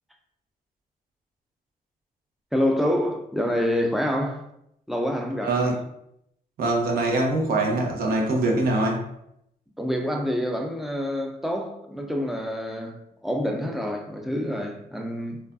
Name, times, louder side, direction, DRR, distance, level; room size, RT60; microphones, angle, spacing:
voice 1, 2.5-4.4 4.9-5.8 9.8-15.5, equal, ahead, 0.4 m, -27 dB
voice 2, 5.4-5.8 6.6-9.0, right 2 dB, 80° right, 0.9 m, -23 dB
4.7 x 2.3 x 2.5 m
wide cardioid pair, 170°, 15 cm